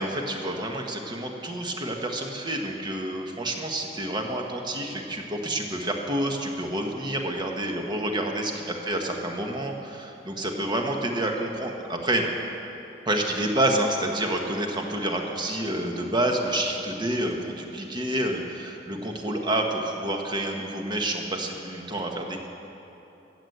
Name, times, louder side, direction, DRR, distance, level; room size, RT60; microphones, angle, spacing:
voice 1, 0.0-12.3 13.1-22.5, right 1 dB, 25° right, 2 dB, 1.2 m, -28 dB
14.5 x 7.9 x 7.9 m, 3.0 s
head